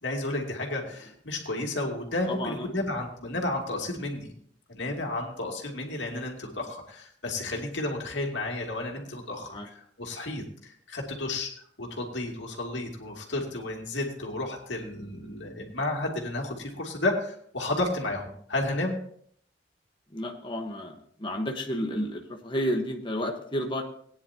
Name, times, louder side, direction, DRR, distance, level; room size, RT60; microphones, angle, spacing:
voice 1, 0.0-4.3 4.7-19.0, left 2 dB, 80° left, 1 dB, 2.6 m, -32 dB
voice 2, 2.3-2.8 9.5-9.7 20.1-20.9 21.2-23.8, equal, 25° left, 2 dB, 1.3 m, -31 dB
19.0 x 10.0 x 2.9 m, 0.62 s
head